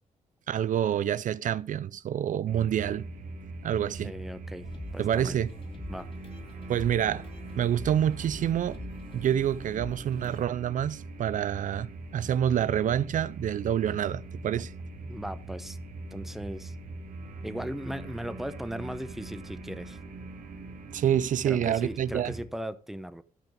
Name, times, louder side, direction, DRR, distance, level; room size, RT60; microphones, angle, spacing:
voice 1, 0.5-3.1 3.6-4.1 5.0-5.5 6.7-7.2 7.6-8.8 9.1-14.7 20.9-22.3, right 10 dB, 65° right, 0.4 m, -27 dB
sound 1, 2.5-22.4, right 2 dB, 90° right, 2.3 m, -42 dB
voice 2, 4.0-4.7 4.9-5.4 5.9-6.1 15.0-15.8 16.1-16.7 17.4-20.0 21.5-23.2, equal, ahead, 0.7 m, -37 dB
sound 2, 4.6-10.4, left 2 dB, 40° left, 2.2 m, -44 dB
12.5 x 5.8 x 5.1 m
cardioid pair, 105°, 14 cm